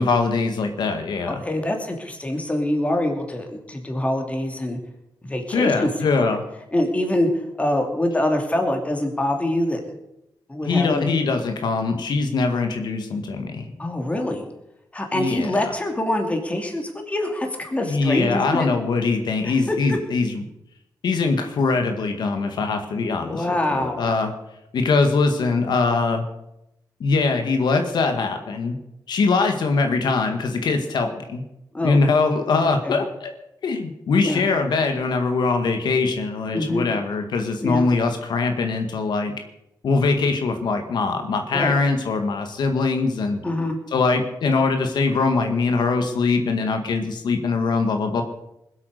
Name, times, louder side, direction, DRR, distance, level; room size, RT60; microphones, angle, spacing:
voice 1, 0.0-1.4 5.5-6.4 10.6-13.7 15.1-15.7 17.9-20.4 21.0-24.3 24.7-26.3 27.0-28.8 29.1-31.4 31.8-33.3 33.6-39.3 39.8-43.4 43.9-48.2, left 4 dB, 80° left, 6 dB, 1.7 m, -22 dB
voice 2, 1.3-4.8 5.2-5.9 6.7-7.3 7.6-9.8 10.5-11.1 13.8-14.4 14.9-18.7 19.7-20.0 23.2-24.0 31.7-32.0 32.6-33.0 34.2-34.4 36.5-36.9 37.6-37.9 41.5-41.7 43.4-43.8, left 1 dB, 20° left, 3 dB, 2.9 m, -24 dB
21.0 x 8.4 x 6.7 m, 0.85 s
cardioid pair, 105°, 8 cm